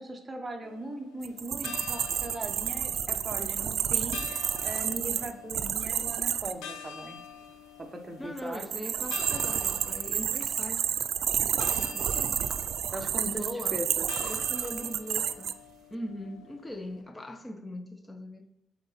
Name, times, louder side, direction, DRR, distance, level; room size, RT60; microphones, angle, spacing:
voice 1, 0.0-7.2 7.8-8.6 11.8-12.3 12.9-13.4 13.7-14.1, right 1 dB, 25° right, 1.0 m, -39 dB
sound 1, 0.6-17.0, left 7 dB, 90° left, 1.0 m, -47 dB
sound 2, 1.2-6.5 8.4-15.5, right 9 dB, 70° right, 0.3 m, -30 dB
voice 2, 8.2-10.9 11.8-12.1 13.2-13.8 14.2-15.5 15.9-18.4, left 1 dB, 15° left, 0.7 m, -40 dB
7.9 x 4.0 x 4.1 m
cardioid pair, 90°, 0 cm